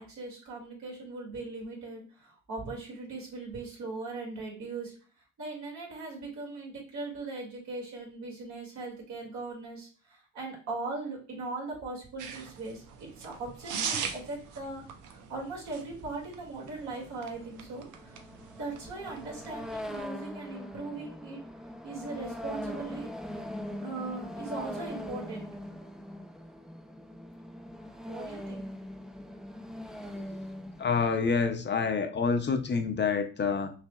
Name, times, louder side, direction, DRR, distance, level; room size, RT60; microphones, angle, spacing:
voice 1, 0.0-4.9 5.4-14.8 15.1-18.2 18.6-21.4 21.8-23.1 23.8-25.5 28.1-28.7, right 3 dB, 70° right, -2 dB, 2.4 m, -39 dB
sound 1, 12.2-20.1, right 6 dB, 85° right, 0.7 m, -41 dB
sound 2, 16.7-31.2, left 1 dB, ahead, 0.5 m, -41 dB
voice 2, 30.8-33.7, left 5 dB, 35° left, 7 dB, 0.7 m, -27 dB
5.7 x 3.2 x 2.4 m, 0.39 s
cardioid pair, 90°, 30 cm